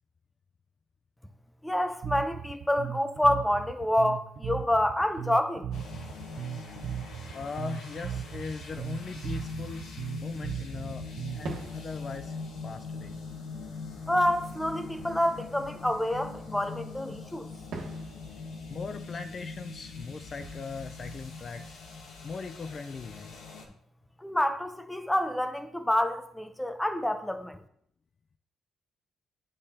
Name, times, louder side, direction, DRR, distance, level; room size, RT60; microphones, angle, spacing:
voice 1, 1.6-5.7 14.1-17.5 24.2-27.6, left 1 dB, 5° left, 0.7 m, -28 dB
Bass guitar, 2.0-11.6, right 9 dB, 65° right, 0.5 m, -38 dB
sound 1, 5.7-23.7, left 4 dB, 85° left, 1.1 m, -42 dB
voice 2, 7.3-9.9 10.2-11.1 11.3-13.2 18.7-21.8 22.2-23.4, left 4 dB, 45° left, 0.4 m, -39 dB
Fireworks, 8.7-10.6 11.4-16.8 17.7-22.4, right 2 dB, 85° right, 1.4 m, -48 dB
8.5 x 5.3 x 2.8 m
cardioid pair, 90°, 0 cm